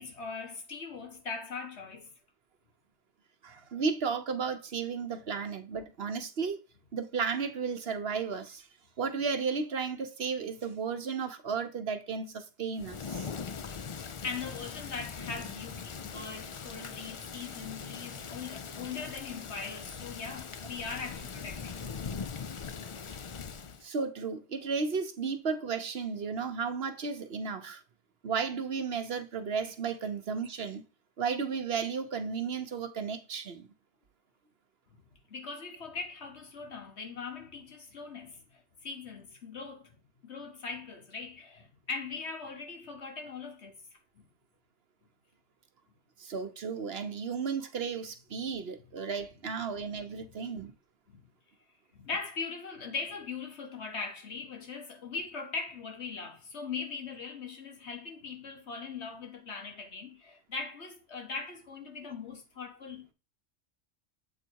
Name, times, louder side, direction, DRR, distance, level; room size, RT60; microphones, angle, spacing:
voice 1, 0.0-2.1 14.2-21.9 35.3-40.0 40.2-43.7 44.2-44.3 50.2-50.3 51.1-51.2 51.9-63.1, left 4 dB, 70° left, 1.7 m, -40 dB
voice 2, 3.4-6.6 6.9-8.7 9.0-13.3 22.4-22.5 23.8-27.8 28.2-30.8 31.2-33.7 46.2-50.7, right 5 dB, 60° right, 1.1 m, -34 dB
Thunder / Rain, 12.8-23.8, left 6 dB, 50° left, 0.4 m, -41 dB
7.9 x 4.0 x 4.6 m
omnidirectional pair, 1.2 m